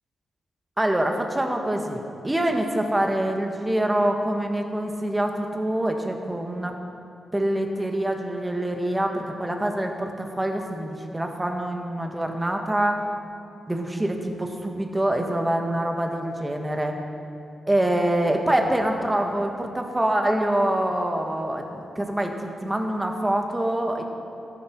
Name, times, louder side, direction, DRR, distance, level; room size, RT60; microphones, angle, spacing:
voice 1, 0.8-6.7 7.3-13.1 13.7-16.9 17.7-24.0, right 1 dB, 15° right, 3 dB, 1.5 m, -25 dB
13.5 x 10.5 x 4.7 m, 2.7 s
cardioid pair, 65°, 0 cm